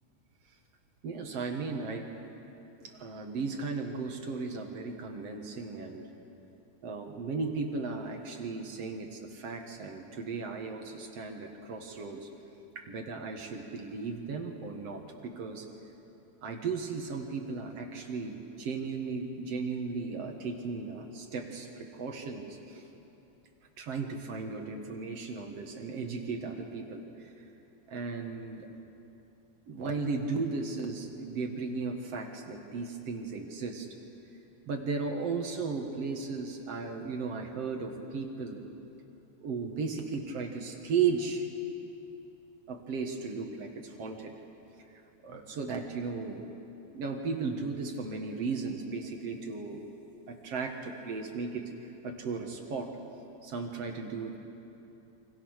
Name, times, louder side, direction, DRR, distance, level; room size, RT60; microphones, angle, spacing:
voice 1, 1.0-2.1 2.8-6.1 6.8-12.3 12.8-15.7 16.4-22.9 23.8-27.5 27.9-28.7 29.7-33.9 34.7-38.6 39.4-41.5 42.7-44.3 44.9-46.4 46.9-49.8 50.3-52.9 53.4-54.4, right 4 dB, 55° right, 3 dB, 2.5 m, -36 dB
28.5 x 25.0 x 6.5 m, 2.8 s
omnidirectional pair, 3.5 m